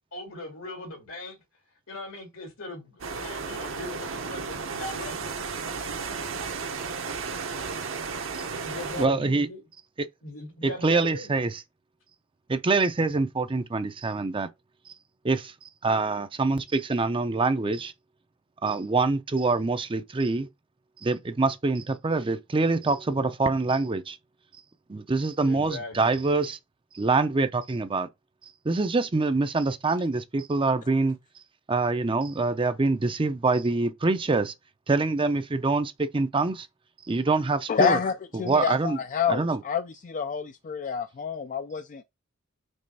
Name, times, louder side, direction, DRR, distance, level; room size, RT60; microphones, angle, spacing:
voice 1, 0.1-1.4 1.9-5.3 5.6-6.9 8.6-9.6 10.2-11.4 25.5-26.2, left 2 dB, 80° left, 2.1 m, -40 dB
sound 1, 3.0-9.1, right 5 dB, 70° right, 1.0 m, -34 dB
voice 2, 9.0-9.5 10.0-10.1 10.6-11.5 12.5-14.5 15.2-15.5 15.8-17.9 18.6-20.5 21.0-24.2 24.9-26.6 26.9-28.1 28.6-31.2 31.7-34.5 34.9-36.7 37.1-38.0 38.4-39.0 39.3-39.6, right 3 dB, 25° right, 0.5 m, -25 dB
voice 3, 37.7-42.0, left 6 dB, 40° left, 0.4 m, -28 dB
5.4 x 3.3 x 5.4 m
head